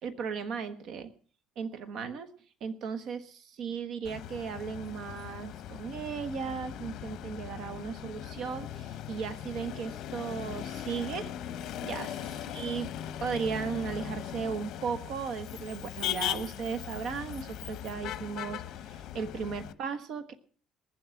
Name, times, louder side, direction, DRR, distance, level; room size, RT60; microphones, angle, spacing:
voice 1, 0.0-1.1 1.6-2.3 2.6-11.3 11.8-12.2 12.5-12.9 13.2-20.3, right 6 dB, 60° right, 10 dB, 1.3 m, -36 dB
Motor vehicle (road), 4.0-19.7, left 11 dB, 60° left, 0.9 m, -39 dB
20.5 x 7.7 x 5.8 m, 0.43 s
cardioid pair, 125°, 0 cm